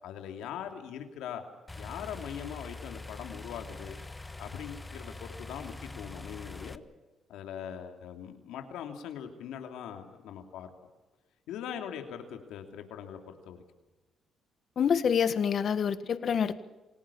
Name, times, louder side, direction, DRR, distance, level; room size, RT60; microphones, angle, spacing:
voice 1, 0.0-1.4 1.8-4.0 4.4-6.8 7.3-10.7 11.5-13.6, left 9 dB, 90° left, 5 dB, 2.9 m, -41 dB
sound 1, 1.7-6.8, left 3 dB, 15° left, 1.2 m, -44 dB
voice 2, 14.8-16.6, left 7 dB, 55° left, 12 dB, 1.6 m, -27 dB
28.0 x 17.5 x 7.2 m, 1.1 s
cardioid pair, 90°, 0 cm